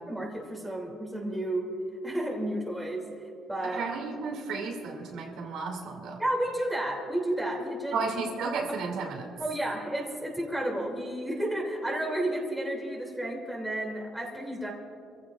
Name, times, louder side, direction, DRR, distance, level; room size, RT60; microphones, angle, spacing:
voice 1, 0.1-1.7 2.0-3.0 3.5-3.8 6.2-7.9 9.4-14.7, right 1 dB, 5° right, -3 dB, 2.6 m, -31 dB
voice 2, 3.6-6.2 7.9-9.3, right 4 dB, 75° right, -1 dB, 2.4 m, -33 dB
27.0 x 15.5 x 2.4 m, 2.6 s
cardioid pair, 155°, 0 cm